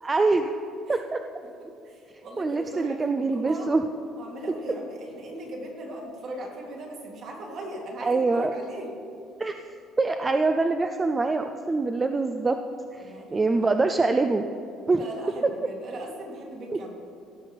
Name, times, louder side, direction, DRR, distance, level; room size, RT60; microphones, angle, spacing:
voice 1, 0.0-0.5 0.9-1.2 2.4-3.8 8.0-8.5 9.4-9.5 10.0-12.6 12.9-14.4 14.9-15.0, right 3 dB, 15° right, 7 dB, 0.3 m, -24 dB
voice 2, 1.4-3.9 4.2-8.9 13.0-13.8 14.9-16.9, right 1 dB, 45° right, 0 dB, 2.2 m, -39 dB
17.0 x 5.8 x 5.2 m, 2.7 s
cardioid pair, 170°, 0 cm